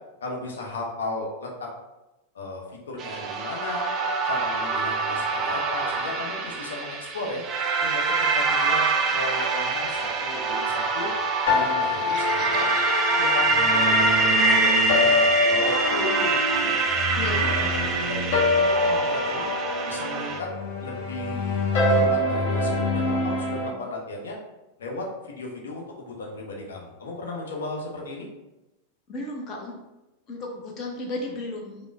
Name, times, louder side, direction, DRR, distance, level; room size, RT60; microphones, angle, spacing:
voice 1, 0.2-1.7 2.3-3.9 4.2-7.4 7.8-11.1 11.5-12.7 13.2-16.8 17.2-19.5 19.9-20.5 20.8-24.4 24.8-28.3, left 2 dB, 65° left, 0 dB, 0.8 m, -35 dB
sound 1, 3.0-20.4, right 3 dB, 30° right, 0.5 m, -25 dB
sound 2, 11.5-23.7, left 2 dB, 50° left, 1.1 m, -25 dB
voice 2, 17.1-17.5 29.1-29.7 30.3-31.9, left 2 dB, 30° left, 0 dB, 0.6 m, -34 dB
5.1 x 2.1 x 3.4 m, 0.98 s
figure-of-eight pair, 90°, 0 cm